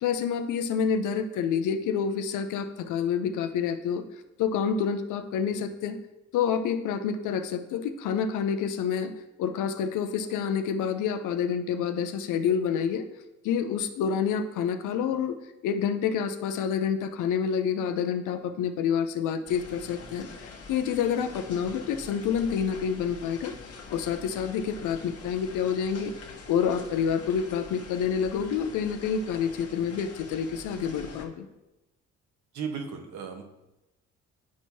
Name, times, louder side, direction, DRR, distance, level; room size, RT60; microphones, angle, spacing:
voice 1, 0.0-4.0 4.4-6.0 6.3-9.1 9.4-13.0 13.4-15.3 15.6-26.2 26.5-31.5, left 7 dB, 85° left, 8 dB, 0.7 m, -28 dB
sound 1, 19.5-31.3, left 4 dB, 50° left, 1.2 m, -45 dB
voice 2, 32.5-33.4, right 6 dB, 70° right, 4 dB, 1.2 m, -35 dB
10.5 x 4.5 x 2.8 m, 0.98 s
cardioid pair, 90°, 30 cm